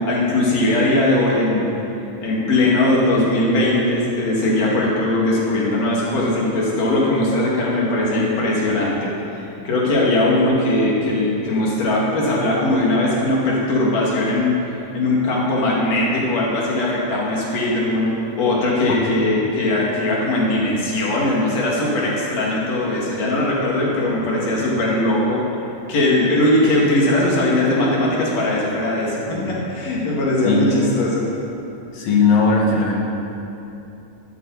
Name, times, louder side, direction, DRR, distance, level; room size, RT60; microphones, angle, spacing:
voice 1, 0.0-1.7 2.2-25.4 25.9-31.3, left 1 dB, 50° left, -5 dB, 3.3 m, -20 dB
voice 2, 31.9-33.0, left 4 dB, 90° left, -3 dB, 3.6 m, -17 dB
15.5 x 12.5 x 4.1 m, 2.9 s
omnidirectional pair, 3.9 m